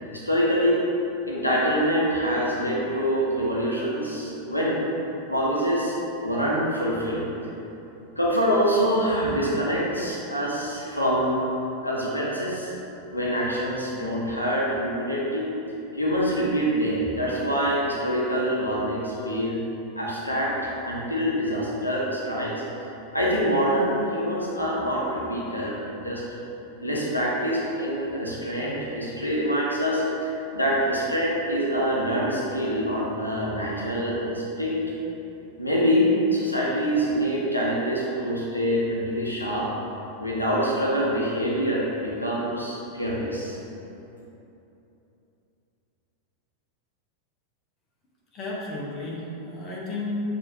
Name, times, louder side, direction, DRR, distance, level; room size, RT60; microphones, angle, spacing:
voice 1, 0.1-0.8 1.2-4.8 5.3-7.2 8.2-11.4 11.8-12.7 13.1-15.5 15.9-19.6 20.0-22.6 23.1-26.2 26.8-34.8 35.6-39.7 40.2-43.6, equal, 85° left, -5 dB, 0.6 m, -25 dB
voice 2, 48.3-50.2, left 2 dB, 30° left, -5 dB, 0.9 m, -33 dB
6.6 x 2.7 x 2.6 m, 2.9 s
figure-of-eight pair, 90°, 0 cm